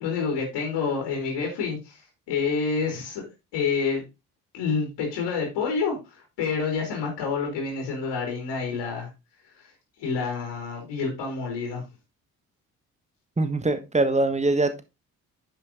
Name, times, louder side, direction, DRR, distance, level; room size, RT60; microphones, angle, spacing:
voice 1, 0.0-2.0 2.3-3.2 3.5-4.0 4.5-9.1 9.6-9.7 10.0-11.8, left 5 dB, 60° left, 3.5 m, -28 dB
voice 2, 13.4-14.8, right 2 dB, 15° right, 1.6 m, -23 dB
10.0 x 5.6 x 3.9 m
figure-of-eight pair, 45°, 46 cm